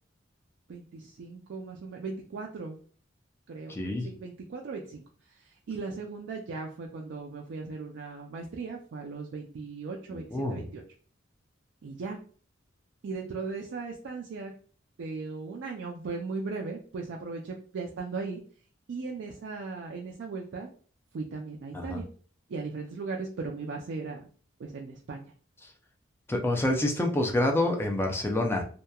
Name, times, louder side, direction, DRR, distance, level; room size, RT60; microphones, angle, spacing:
voice 1, 0.7-2.8 3.5-5.0 5.3-10.8 11.8-12.2 13.0-14.5 15.0-18.4 18.9-20.7 21.1-22.0 22.5-24.2 24.6-25.2, right 4 dB, 65° right, 0 dB, 0.4 m, -37 dB
voice 2, 3.7-4.1 10.1-10.6 21.7-22.0 26.3-28.6, left 1 dB, 10° left, 2 dB, 0.4 m, -27 dB
2.8 x 2.2 x 2.2 m, 0.43 s
head